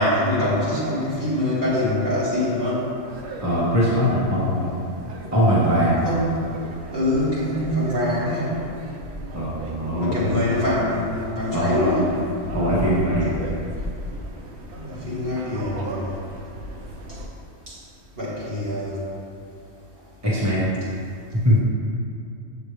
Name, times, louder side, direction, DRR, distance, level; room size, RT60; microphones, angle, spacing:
voice 1, 0.0-2.8 6.0-6.4 6.9-8.6 10.0-12.1 14.7-16.1 17.7-17.8 18.2-19.0, left 1 dB, 50° right, -9 dB, 2.2 m, -24 dB
sound 1, 3.1-17.3, equal, 65° right, 1.0 m, -37 dB
voice 2, 3.4-4.7 5.3-6.0 9.3-10.6 11.5-11.9 12.5-13.4 20.2-20.6 21.3-21.6, equal, 15° right, -8 dB, 1.4 m, -21 dB
7.2 x 6.5 x 3.4 m, 2.5 s
omnidirectional pair, 1.3 m